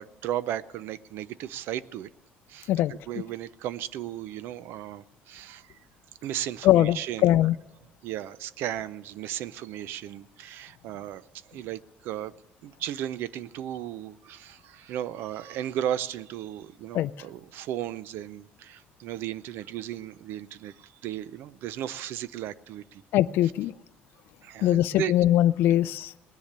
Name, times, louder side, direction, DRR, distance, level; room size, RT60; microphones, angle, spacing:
voice 1, 0.0-2.1 2.5-2.7 3.1-5.8 6.2-7.4 8.0-12.3 12.6-23.0 24.4-25.1 25.7-25.8, right 11 dB, 70° right, 18 dB, 0.5 m, -35 dB
voice 2, 6.6-7.0 7.2-7.5 16.9-17.1 23.1-23.7 24.6-26.1, left 13 dB, 65° left, 13 dB, 0.4 m, -21 dB
19.0 x 10.5 x 6.7 m, 1.1 s
cardioid pair, 165°, 4 cm